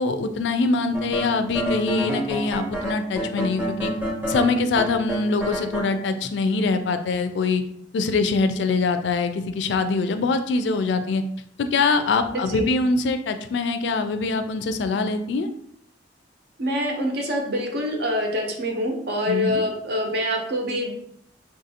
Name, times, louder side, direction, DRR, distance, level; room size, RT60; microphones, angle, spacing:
voice 1, 0.0-3.9 4.3-7.6 7.9-11.2 11.6-15.5 19.3-19.6, left 3 dB, 70° left, 9 dB, 0.3 m, -23 dB
sound 1, 0.9-5.9, right 1 dB, 10° right, 0.7 m, -28 dB
voice 2, 12.3-12.7 16.6-20.9, equal, 60° right, 2 dB, 0.7 m, -25 dB
3.5 x 2.5 x 2.7 m, 0.70 s
head